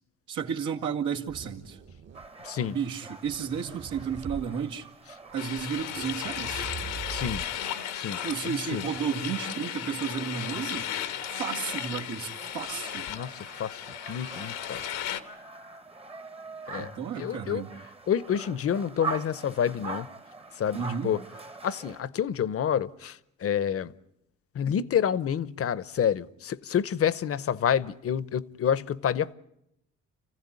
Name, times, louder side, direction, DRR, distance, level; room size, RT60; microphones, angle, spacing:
voice 1, 0.3-1.8 2.7-4.9 5.3-6.7 8.2-10.9 11.3-13.1 16.8-17.7 20.7-21.1, right 7 dB, 85° right, 2.1 m, -32 dB
sound 1, 1.3-2.5 3.1-4.5 5.3-5.4 5.6-7.6, right 5 dB, 55° right, 1.6 m, -42 dB
sound 2, 2.1-22.0, right 4 dB, 20° right, 1.0 m, -44 dB
voice 2, 2.4-2.8 7.1-7.4 7.9-8.9 13.1-14.9 16.7-16.9 17.2-17.6 18.1-20.1 20.6-21.2 21.6-23.9 24.5-29.3, left 8 dB, 50° left, 0.8 m, -28 dB
sound 3, 5.4-15.2, left 10 dB, 90° left, 1.4 m, -35 dB
29.5 x 15.5 x 9.8 m
cardioid pair, 90°, 30 cm